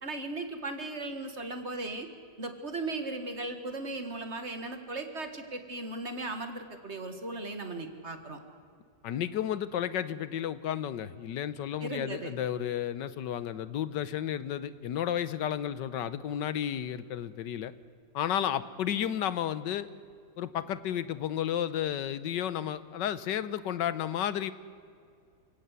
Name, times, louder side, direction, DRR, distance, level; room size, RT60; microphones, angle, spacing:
voice 1, 0.0-2.1 2.4-8.4 11.8-12.3, right 2 dB, 40° right, 7 dB, 2.0 m, -37 dB
voice 2, 9.0-17.7 18.1-19.9 20.4-24.5, left 10 dB, 80° left, 15 dB, 1.5 m, -32 dB
28.0 x 17.0 x 8.3 m, 2.3 s
omnidirectional pair, 1.9 m